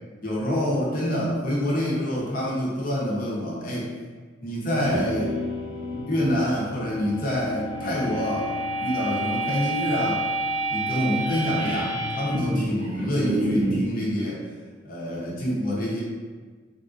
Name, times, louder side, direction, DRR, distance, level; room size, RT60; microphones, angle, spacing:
voice 1, 0.2-3.9 4.4-5.3 6.1-10.2 10.7-14.4 14.8-16.0, equal, 50° left, -5 dB, 0.8 m, -26 dB
sound 1, 4.7-13.9, right 1 dB, 45° right, 0.9 m, -29 dB
3.6 x 2.4 x 2.5 m, 1.4 s
head